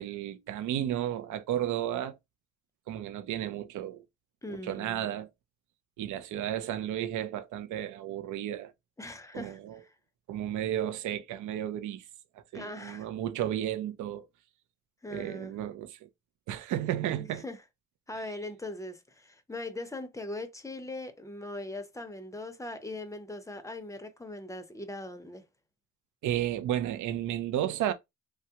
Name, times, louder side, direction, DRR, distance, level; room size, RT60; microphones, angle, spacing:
voice 1, 0.0-2.2 2.9-4.0 4.5-5.3 6.0-8.7 9.3-9.8 10.3-12.1 12.5-14.3 15.1-16.1 16.5-17.4 26.2-27.9, right 11 dB, 75° right, 0.6 m, -33 dB
voice 2, 4.4-5.0 9.0-9.9 12.5-13.1 15.0-15.5 17.2-17.6 18.1-25.4, left 2 dB, 10° left, 0.6 m, -40 dB
3.2 x 2.3 x 2.8 m
cardioid pair, 90°, 30 cm